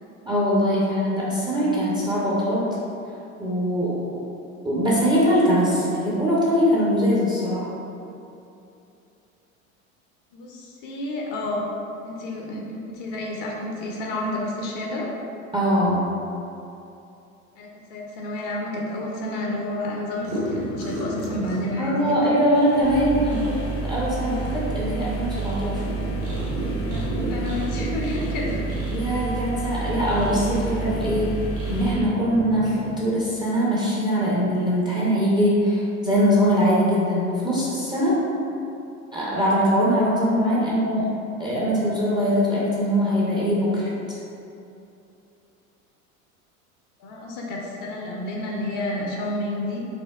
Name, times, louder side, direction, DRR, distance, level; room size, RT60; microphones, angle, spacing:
voice 1, 0.3-2.7 3.4-4.2 4.6-7.7 15.5-16.0 21.8-23.6 23.8-25.8 28.9-31.3 31.7-38.2 39.1-41.1 41.4-44.2, equal, 10° right, -7 dB, 0.4 m, -22 dB
voice 2, 10.3-11.6 12.0-15.1 17.6-22.4 26.8-28.7 47.0-49.8, left 1 dB, 50° left, -2 dB, 0.6 m, -30 dB
sound 1, 20.1-33.0, right 1 dB, 85° right, 0.8 m, -33 dB
sound 2, 22.8-31.9, right 4 dB, 70° left, 0.9 m, -30 dB
4.3 x 2.2 x 2.2 m, 2.7 s
hypercardioid pair, 75°, 42 cm